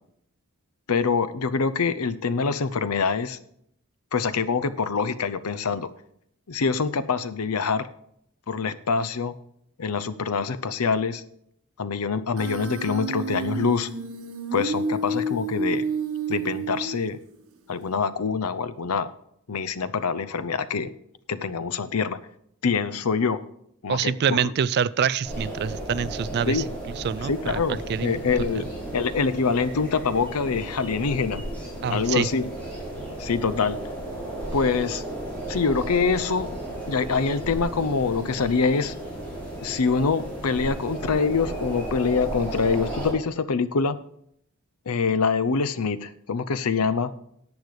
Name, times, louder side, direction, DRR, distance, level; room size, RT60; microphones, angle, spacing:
voice 1, 0.9-3.4 4.1-5.9 6.5-7.9 8.5-9.3 9.8-11.2 11.8-13.9 14.5-15.9 16.3-17.2 17.7-19.1 19.5-20.9 21.3-22.2 22.6-23.4 23.8-24.5 26.5-26.7 27.2-28.7 28.9-31.4 31.9-32.5 33.2-33.8 34.5-35.0 35.5-36.5 36.9-38.9 39.6-44.0 44.9-47.1, left 5 dB, 90° left, 14 dB, 0.7 m, -25 dB
Human voice, 12.4-17.3, right 2 dB, 80° right, 1.5 m, -30 dB
voice 2, 23.9-26.6 27.0-28.1 31.8-32.3, right 7 dB, 50° right, 19 dB, 0.3 m, -26 dB
sound 1, 25.2-43.1, right 1 dB, 5° left, 4.9 m, -34 dB
10.5 x 8.0 x 4.9 m, 0.70 s
head